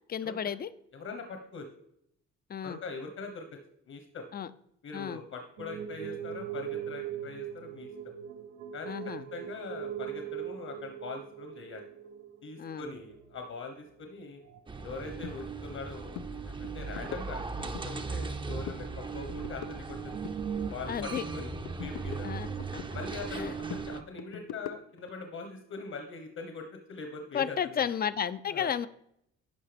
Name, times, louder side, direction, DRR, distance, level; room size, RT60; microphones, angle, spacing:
voice 1, 0.1-0.7 2.5-2.8 4.3-4.5 4.9-5.2 8.9-9.3 12.6-12.8 20.9-21.2 22.2-22.5 23.3-23.5 27.3-28.9, left 8 dB, 30° left, 15 dB, 0.5 m, -32 dB
voice 2, 0.9-1.7 2.6-3.4 3.9-4.3 4.8-7.9 8.7-11.8 12.4-14.4 14.8-16.2 16.4-20.1 20.7-21.5 21.8-22.3 22.9-27.9 28.5-28.7, left 4 dB, 60° left, 5 dB, 1.3 m, -42 dB
sound 1, 5.6-14.1 14.4-14.9 15.3-15.4 15.9-16.0 17.0-19.1 19.4-19.5 19.8-20.7, right 9 dB, 80° right, 0.8 m, -41 dB
sound 2, 14.7-24.0, right 4 dB, 15° right, 0.6 m, -38 dB
sound 3, 15.2-15.4 15.7-15.9 16.1-16.3 16.6-17.9 18.2-18.9 19.1-20.9 21.2-22.9 23.3-25.1, left 10 dB, 80° left, 0.6 m, -43 dB
12.0 x 4.7 x 3.5 m, 0.72 s
cardioid pair, 90°, 30 cm